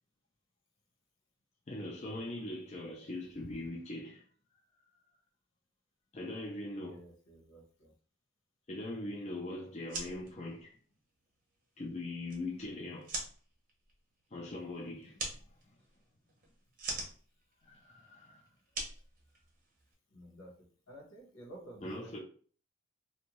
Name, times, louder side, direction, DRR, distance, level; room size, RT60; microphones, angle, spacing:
voice 1, 1.7-4.2 6.1-7.0 8.7-10.8 11.8-13.1 14.3-15.7 17.6-18.4 21.8-22.2, left 2 dB, 30° left, 0.4 m, -41 dB
voice 2, 6.8-7.9 20.1-20.5 20.9-22.2, right 1 dB, 75° left, 1.0 m, -52 dB
sound 1, 9.7-19.9, right 2 dB, 40° right, 0.6 m, -45 dB
2.6 x 2.2 x 2.9 m
head